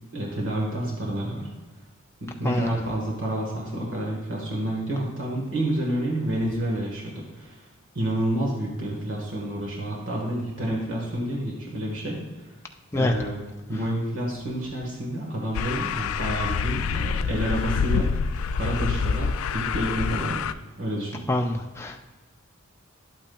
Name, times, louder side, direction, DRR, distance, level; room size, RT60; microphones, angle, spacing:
voice 1, 0.1-1.5 2.2-7.6 7.9-12.5 12.9-13.4 13.7-18.1 18.5-20.5 20.8-21.2, right 1 dB, 65° right, -3 dB, 1.5 m, -29 dB
voice 2, 2.5-2.6 12.9-13.1 21.3-21.5 21.8-22.0, left 1 dB, 10° left, 3 dB, 0.3 m, -24 dB
sound 1, 15.5-20.5, left 6 dB, 90° left, 0.3 m, -27 dB
11.5 x 8.6 x 2.3 m, 1.2 s
head